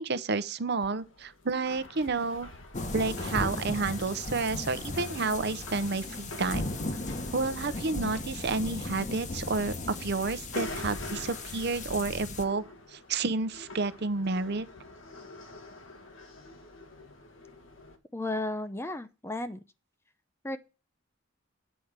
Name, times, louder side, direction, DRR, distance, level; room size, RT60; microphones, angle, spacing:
voice 1, 0.0-2.5 2.9-6.6 7.3-14.7, right 3 dB, 55° right, 0.7 m, -30 dB
sound 1, 0.8-18.0, left 2 dB, 75° left, 1.6 m, -47 dB
sound 2, 2.7-12.4, left 2 dB, 40° left, 1.1 m, -36 dB
voice 2, 18.1-19.6 20.4-20.6, left 2 dB, 15° left, 0.6 m, -34 dB
9.1 x 4.9 x 7.3 m
head